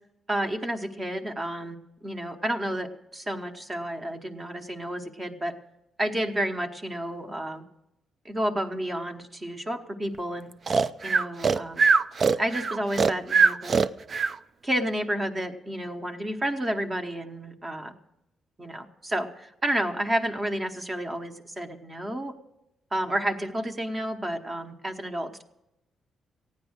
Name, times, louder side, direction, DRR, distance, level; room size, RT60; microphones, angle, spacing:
voice 1, 0.3-5.5 6.0-7.6 8.2-10.5 11.0-11.8 12.3-13.8 14.6-17.9 18.6-22.3 22.9-25.4, right 1 dB, 25° right, 5 dB, 1.1 m, -31 dB
Breathing, 10.7-14.4, right 5 dB, 45° right, 0.4 m, -22 dB
15.0 x 9.6 x 6.4 m, 0.91 s
cardioid pair, 105°, 0 cm